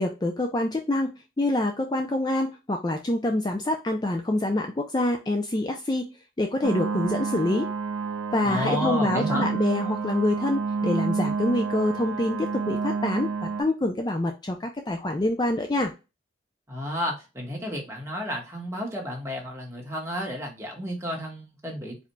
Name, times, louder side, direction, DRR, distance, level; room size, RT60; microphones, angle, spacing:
voice 1, 0.0-6.1 6.4-7.7 8.3-13.3 13.6-15.9, left 1 dB, 25° left, 5 dB, 0.4 m, -26 dB
sound 1, 6.6-13.6, right 4 dB, 75° right, 0.7 m, -29 dB
voice 2, 8.4-9.5 16.7-22.1, equal, 15° right, -1 dB, 1.4 m, -31 dB
4.8 x 4.3 x 2.3 m, 0.27 s
head